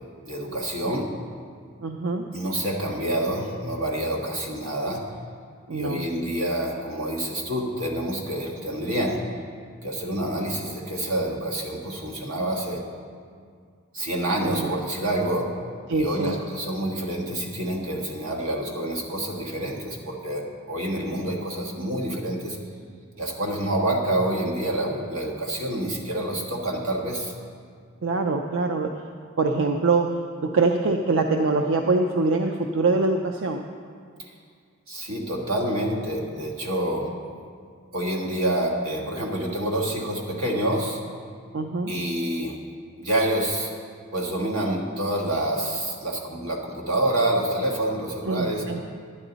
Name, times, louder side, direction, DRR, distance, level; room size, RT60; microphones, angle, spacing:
voice 1, 0.3-1.2 2.3-5.1 5.7-9.2 9.8-12.8 13.9-15.5 15.9-22.6 23.2-27.3 34.2-34.3 34.9-37.2 37.9-41.0 41.9-42.6 43.0-43.7 44.1-48.7, right 1 dB, 85° right, -1 dB, 1.5 m, -27 dB
voice 2, 1.8-2.3 5.7-6.0 14.4-14.7 15.9-16.4 28.0-28.9 29.4-33.6 41.5-41.9 48.2-48.8, right 3 dB, 65° right, 4 dB, 0.4 m, -24 dB
11.0 x 10.0 x 4.0 m, 2.1 s
head